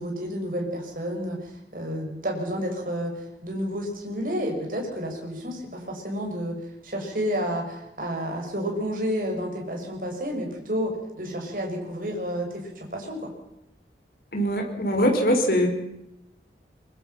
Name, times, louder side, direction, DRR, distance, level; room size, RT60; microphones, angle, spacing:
voice 1, 0.0-6.6 6.8-13.3, equal, 50° right, 1 dB, 6.6 m, -30 dB
voice 2, 14.3-15.7, equal, 55° left, 2 dB, 5.5 m, -22 dB
24.0 x 24.0 x 5.9 m, 0.85 s
head